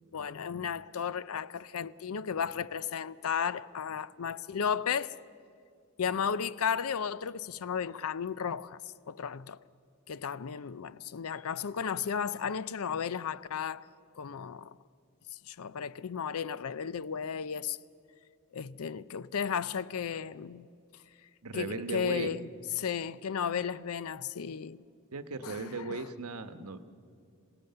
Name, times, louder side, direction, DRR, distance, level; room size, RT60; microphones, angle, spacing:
voice 1, 0.1-5.1 6.0-8.8 9.1-9.6 10.1-13.9 14.2-14.7 15.3-17.8 18.5-20.7 21.5-22.5 22.8-24.8 25.4-26.1, left 7 dB, 70° left, 0.5 m, -34 dB
voice 2, 21.4-22.3 25.1-26.9, right 4 dB, 80° right, 1.1 m, -37 dB
26.0 x 17.5 x 6.7 m
head